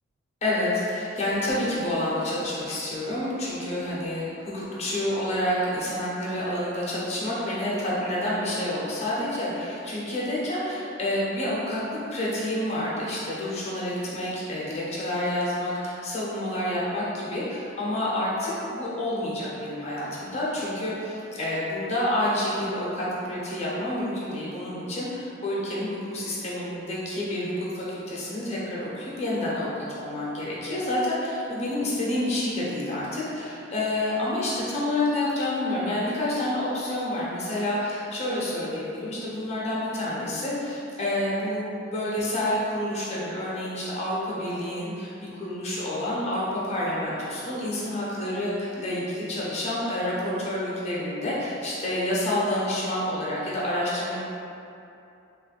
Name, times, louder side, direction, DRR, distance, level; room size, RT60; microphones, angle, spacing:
voice 1, 0.4-54.2, left 1 dB, 35° left, -7 dB, 0.8 m, -28 dB
3.2 x 2.4 x 3.3 m, 2.7 s
head